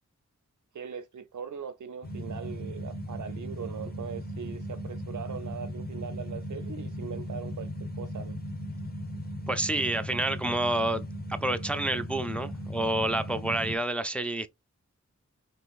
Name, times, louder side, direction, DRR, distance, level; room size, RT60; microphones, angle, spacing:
voice 1, 0.7-8.4, right 7 dB, 80° right, 0.6 m, -40 dB
sound 1, 2.0-13.8, equal, 30° left, 0.8 m, -37 dB
voice 2, 9.5-11.0 11.3-14.5, right 1 dB, 5° left, 0.3 m, -29 dB
3.8 x 2.4 x 2.4 m
wide cardioid pair, 95°, 29 cm